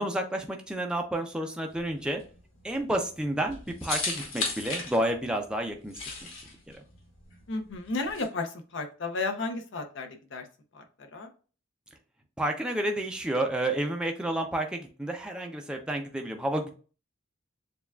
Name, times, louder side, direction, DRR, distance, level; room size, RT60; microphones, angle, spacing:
voice 1, 0.0-2.2 2.6-6.0 6.7-6.8 12.4-16.7, right 1 dB, 5° right, 2 dB, 0.4 m, -30 dB
sound 1, 1.7-8.2, left 3 dB, 85° left, 1.4 m, -37 dB
voice 2, 7.5-10.4 10.7-10.8 11.1-11.3, left 3 dB, 60° left, 6 dB, 0.7 m, -33 dB
6.9 x 2.3 x 2.3 m, 0.38 s
head